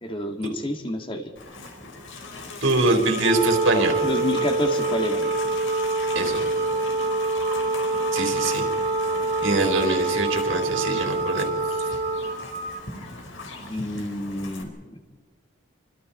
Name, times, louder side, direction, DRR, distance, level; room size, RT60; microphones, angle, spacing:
voice 1, 0.0-1.3 4.0-5.3 13.7-15.0, left 1 dB, 25° left, 5 dB, 1.9 m, -29 dB
Livestock farm animals working animals, 1.4-14.6, left 3 dB, 80° left, 4.7 m, -39 dB
voice 2, 2.6-4.0 6.1-6.5 8.1-8.6 9.4-11.5, right 2 dB, 80° right, 3 dB, 4.2 m, -23 dB
sound 1, 2.7-12.8, right 2 dB, 35° right, 1.3 m, -36 dB
Wind instrument woodwind instrument, 3.2-12.4, right 2 dB, 55° right, 2.7 m, -26 dB
30.0 x 25.0 x 4.4 m, 1.5 s
head